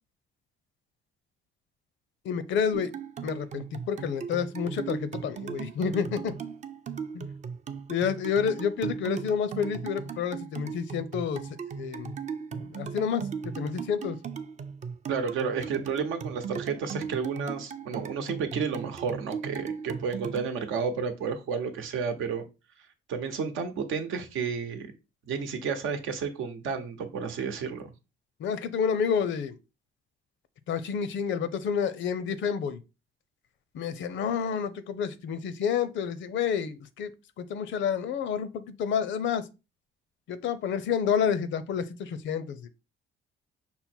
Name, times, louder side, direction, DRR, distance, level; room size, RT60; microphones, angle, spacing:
voice 1, 2.2-2.9 3.2-6.3 7.1-7.3 7.9-11.5 11.8-12.1 12.5-14.2 28.4-29.6 30.7-32.8 33.7-37.1 37.4-39.5 40.3-42.7, left 7 dB, 70° left, 0.6 m, -29 dB
sound 1, 2.7-20.5, right 6 dB, 35° right, 0.5 m, -38 dB
voice 2, 15.1-22.4 23.1-24.9 25.3-27.9, right 5 dB, 85° right, 0.9 m, -31 dB
5.6 x 2.1 x 4.3 m
cardioid pair, 90°, 20 cm